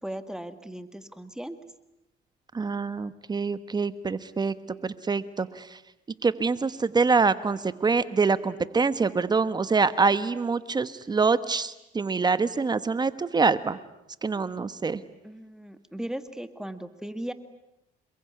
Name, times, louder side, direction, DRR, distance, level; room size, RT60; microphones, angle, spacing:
voice 1, 0.0-1.6 15.2-17.3, right 1 dB, 5° right, 10 dB, 1.8 m, -37 dB
voice 2, 2.5-4.5 4.8-5.8 6.2-13.8 14.2-15.0, right 4 dB, 25° right, 13 dB, 1.2 m, -25 dB
28.0 x 22.0 x 9.6 m, 0.89 s
cardioid pair, 110°, 17 cm